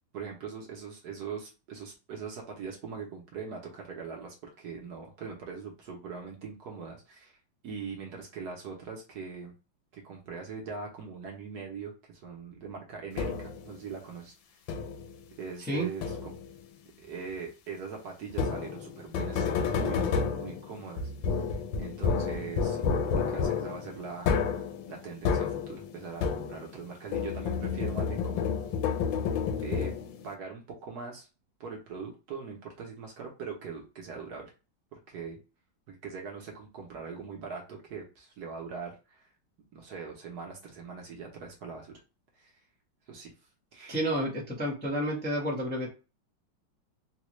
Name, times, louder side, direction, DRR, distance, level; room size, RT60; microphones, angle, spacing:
voice 1, 0.1-7.4 7.6-9.5 9.9-14.3 15.4-16.3 17.0-21.4 21.8-24.3 24.9-28.6 29.6-29.9 30.2-31.3 31.6-34.5 34.9-35.4 35.9-39.3 39.7-41.9 42.3-42.5 43.1-43.3 43.7-44.0, right 5 dB, 65° right, 0 dB, 1.2 m, -41 dB
sound 1, 13.2-13.7 14.7-15.2 16.0-16.6 18.3-26.8 27.1-30.3, left 6 dB, 85° left, 1.3 m, -30 dB
voice 2, 43.9-45.9, equal, 5° left, -4 dB, 0.8 m, -30 dB
4.0 x 2.2 x 3.1 m, 0.31 s
omnidirectional pair, 2.0 m